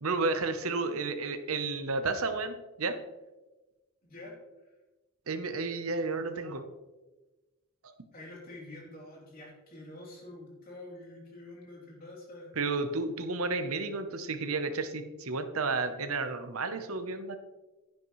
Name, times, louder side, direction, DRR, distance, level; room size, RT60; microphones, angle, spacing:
voice 1, 0.0-3.0 5.3-6.6 7.8-7.9 12.6-17.4, right 3 dB, 85° right, 8 dB, 0.9 m, -32 dB
voice 2, 4.0-4.4 8.1-12.5, left 2 dB, 40° left, -3 dB, 3.3 m, -47 dB
10.5 x 10.5 x 3.2 m, 1.1 s
head